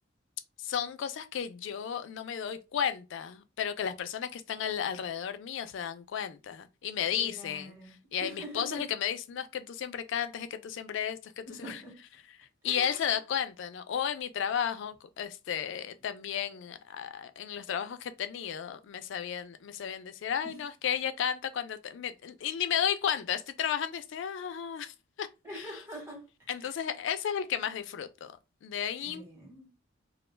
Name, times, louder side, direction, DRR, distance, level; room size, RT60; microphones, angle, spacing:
voice 1, 0.6-11.8 12.4-25.3 25.5-25.7 26.5-28.3 28.6-29.2, left 8 dB, 65° left, 0.3 m, -33 dB
voice 2, 7.1-8.9 11.5-12.0 12.6-13.1 20.4-20.6 25.4-26.2 26.6-26.8 29.0-29.7, equal, 15° right, 1.0 m, -45 dB
2.3 x 2.2 x 3.1 m
head